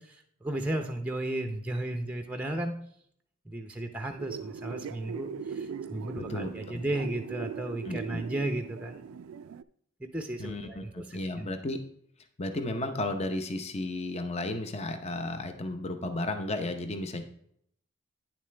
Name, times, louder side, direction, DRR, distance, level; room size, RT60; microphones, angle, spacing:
voice 1, 0.0-2.7 3.5-9.0 10.0-11.5, right 1 dB, 5° right, 5 dB, 0.6 m, -34 dB
sound 1, 4.2-9.6, right 6 dB, 85° right, 0.3 m, -40 dB
voice 2, 6.2-6.8 7.8-8.2 10.4-11.8 12.4-17.2, left 2 dB, 30° left, 7 dB, 0.7 m, -34 dB
9.5 x 7.2 x 3.2 m, 0.69 s
head